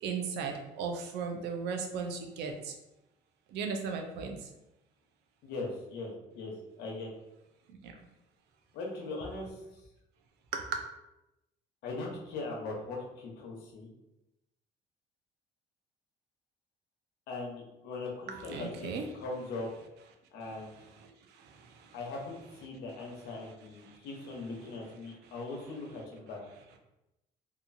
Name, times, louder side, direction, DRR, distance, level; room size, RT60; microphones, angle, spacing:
voice 1, 0.0-2.7 3.5-4.4 10.5-10.8 18.3-19.1, right 5 dB, 80° right, 4 dB, 0.5 m, -36 dB
voice 2, 5.4-7.1 8.7-9.8 11.8-13.9 17.3-19.7 20.3-20.9 21.9-26.4, left 3 dB, 85° left, -1 dB, 0.8 m, -40 dB
2.9 x 2.3 x 2.6 m, 0.92 s
cardioid pair, 110°, 17 cm